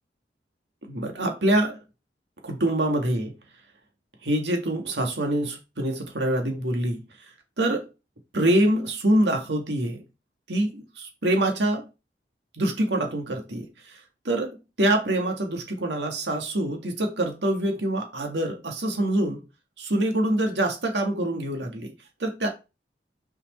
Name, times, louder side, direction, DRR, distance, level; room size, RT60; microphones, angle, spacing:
voice 1, 0.8-1.8 2.4-3.3 4.2-7.0 7.6-7.8 8.3-10.0 10.5-11.9 12.5-19.4 19.8-21.9 22.2-22.5, right 1 dB, 85° right, 1.9 m, -25 dB
6.2 x 4.9 x 4.2 m
head